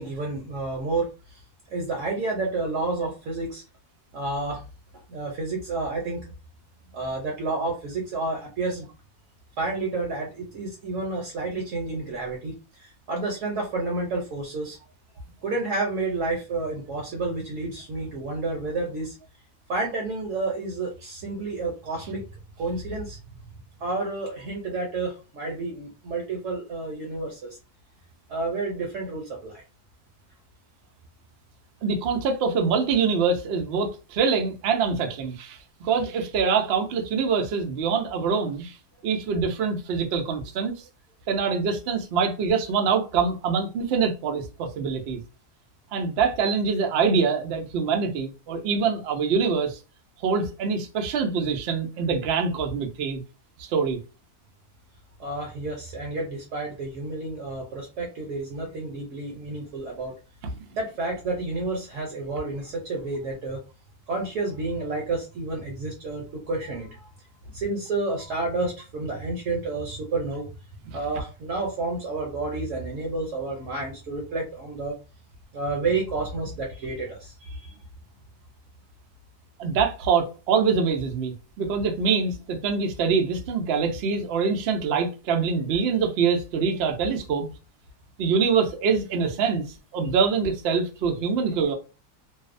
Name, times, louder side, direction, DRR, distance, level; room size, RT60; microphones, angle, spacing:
voice 1, 0.0-1.4 1.7-3.6 4.1-4.6 5.1-6.3 6.9-8.9 9.6-14.8 15.4-19.1 19.7-22.2 22.6-23.2 23.8-27.6 28.3-29.6 55.2-60.1 60.8-63.6 64.1-67.1 67.5-70.5 70.9-75.0 75.5-77.8, right 3 dB, 65° right, 0.9 m, -30 dB
voice 2, 31.8-38.8 39.0-40.8 41.3-45.2 45.9-49.8 50.2-53.2 53.6-54.0 60.4-60.5 70.9-71.0 79.6-87.5 88.2-89.7 89.9-91.7, right 5 dB, 90° right, 0.5 m, -24 dB
2.6 x 2.0 x 2.4 m
omnidirectional pair, 1.6 m